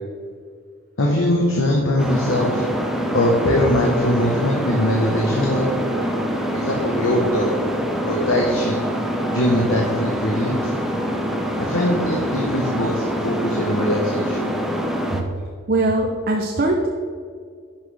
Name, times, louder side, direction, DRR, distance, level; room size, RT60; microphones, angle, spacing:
voice 1, 1.0-2.6 3.1-5.7 6.5-7.5 8.1-8.8 9.3-10.7 11.6-14.5, left 1 dB, 85° left, -2 dB, 1.2 m, -21 dB
sound 1, 2.0-15.2, equal, ahead, 0.6 m, -25 dB
voice 2, 15.7-16.9, right 2 dB, 45° right, 2 dB, 0.6 m, -21 dB
11.0 x 6.0 x 3.4 m, 2.1 s
head